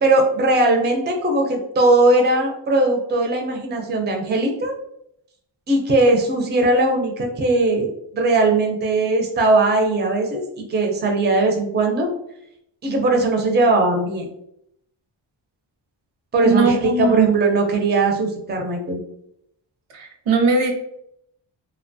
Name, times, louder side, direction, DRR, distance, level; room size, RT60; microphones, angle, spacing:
voice 1, 0.0-4.7 5.7-7.9 8.1-12.1 12.8-14.3 16.3-19.0, right 2 dB, 25° right, 2 dB, 0.4 m, -19 dB
voice 2, 16.4-17.3 19.9-20.7, right 4 dB, 90° right, 3 dB, 0.7 m, -19 dB
2.8 x 2.2 x 2.5 m, 0.75 s
wide cardioid pair, 145°, 47 cm